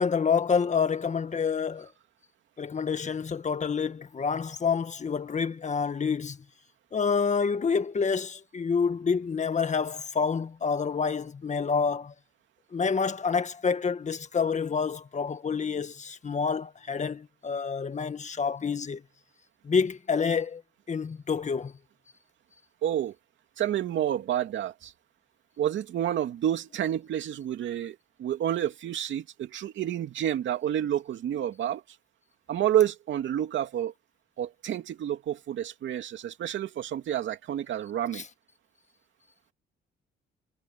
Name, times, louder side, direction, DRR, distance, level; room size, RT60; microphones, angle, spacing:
voice 1, 0.0-1.9 2.6-6.4 6.9-12.1 12.7-19.0 19.6-20.6 20.9-21.7 38.1-38.2, left 5 dB, 35° left, 1.7 m, -28 dB
voice 2, 22.8-23.1 23.6-24.9 25.6-31.8 32.5-33.9 34.4-38.2, right 11 dB, 70° right, 2.5 m, -29 dB
cardioid pair, 90°, 20 cm